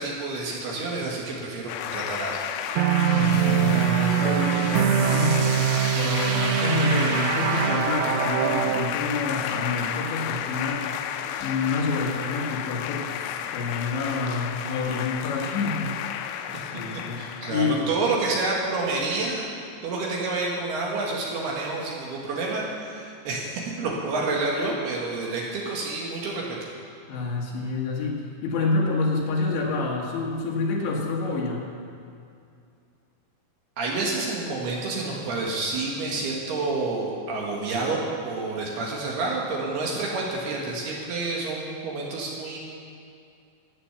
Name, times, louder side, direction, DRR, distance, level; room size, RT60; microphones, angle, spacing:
voice 1, 0.0-2.5 16.5-19.4 19.8-26.6 33.8-42.6, right 3 dB, 65° right, -3 dB, 3.3 m, -29 dB
sound 1, 1.7-18.1, left 9 dB, 90° left, 3.2 m, -32 dB
sound 2, 2.8-8.9, right 10 dB, 90° right, 3.1 m, -23 dB
voice 2, 3.1-10.9 11.4-16.0 16.6-17.8 27.1-31.7, left 3 dB, 70° left, -2 dB, 3.9 m, -28 dB
13.0 x 9.9 x 7.1 m, 2.4 s
omnidirectional pair, 5.5 m